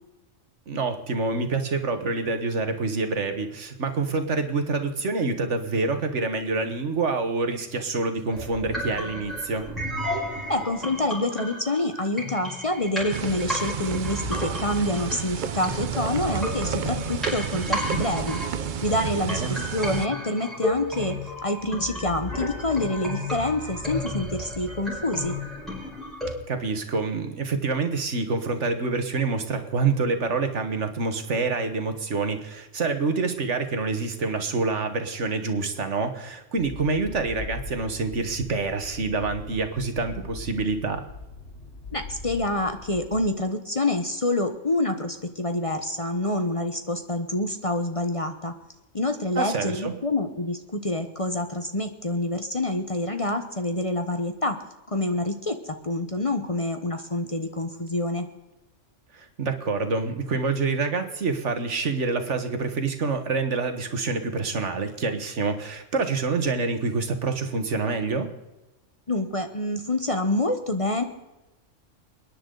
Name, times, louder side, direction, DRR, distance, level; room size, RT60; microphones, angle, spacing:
voice 1, 0.7-9.7 19.3-19.6 26.5-41.0 49.4-49.9 59.1-68.3, right 4 dB, 65° right, 7 dB, 1.8 m, -27 dB
sound 1, 8.3-26.3, left 1 dB, ahead, 5.7 m, -33 dB
voice 2, 10.5-18.4 18.8-25.3 41.9-48.5 48.9-54.6 54.9-58.3 69.1-71.0, left 2 dB, 30° left, 6 dB, 1.0 m, -27 dB
sound 2, 13.1-20.1, right 8 dB, 50° right, 0.6 m, -31 dB
sound 3, 36.6-43.2, left 4 dB, 50° left, 4.6 m, -41 dB
29.5 x 10.0 x 3.9 m, 1.0 s
omnidirectional pair, 1.3 m